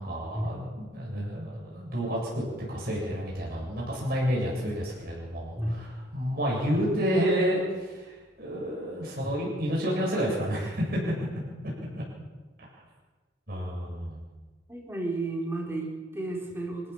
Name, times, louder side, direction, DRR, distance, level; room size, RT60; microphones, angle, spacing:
voice 1, 0.0-11.0 11.9-12.0 12.6-12.7 13.5-14.2, equal, 55° right, -4 dB, 7.7 m, -30 dB
voice 2, 14.7-16.9, right 2 dB, 15° right, -2 dB, 4.6 m, -32 dB
27.0 x 15.0 x 7.3 m, 1.3 s
head